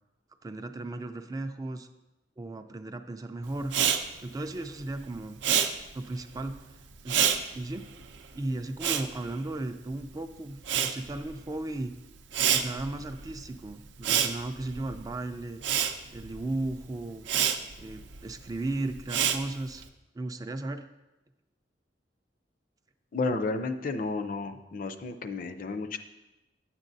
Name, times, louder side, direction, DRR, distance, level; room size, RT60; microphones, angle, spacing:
voice 1, 0.4-1.9 2.4-3.7 4.2-5.4 5.9-6.6 7.0-7.2 7.5-7.9 8.3-12.0 12.5-15.6 16.1-17.3 17.8-19.8 20.1-20.8, right 2 dB, 20° right, 8 dB, 0.3 m, -35 dB
Respiratory sounds, 3.6-10.1 10.4-19.8, right 8 dB, 85° right, 0.6 m, -29 dB
voice 2, 23.1-26.0, left 3 dB, 50° left, 9 dB, 0.5 m, -32 dB
9.7 x 7.3 x 2.6 m, 0.99 s
head